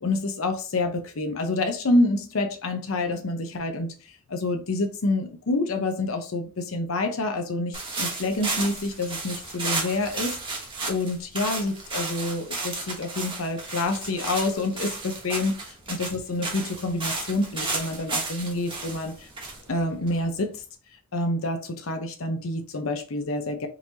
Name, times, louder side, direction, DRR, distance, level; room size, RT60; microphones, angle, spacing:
voice 1, 0.0-3.9 4.3-10.6 10.9-15.6 15.9-19.3 19.7-20.6 21.1-23.7, left 2 dB, 80° left, 0.7 m, -27 dB
sound 1, 7.7-20.5, right 3 dB, 25° right, 1.0 m, -33 dB
3.8 x 3.1 x 2.7 m
head